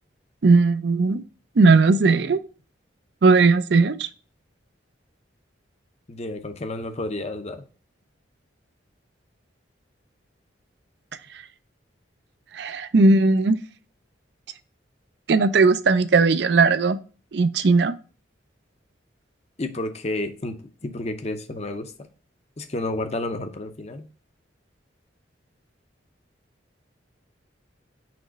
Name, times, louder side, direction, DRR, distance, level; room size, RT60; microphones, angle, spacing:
voice 1, 0.4-1.2 1.6-2.4 3.2-4.1 12.5-13.6 15.3-17.0 17.3-18.0, right 3 dB, 60° right, 13 dB, 0.5 m, -17 dB
voice 2, 6.1-7.6 19.6-21.9 22.6-24.1, left 2 dB, 35° left, 8 dB, 0.6 m, -31 dB
6.0 x 3.1 x 5.1 m, 0.37 s
head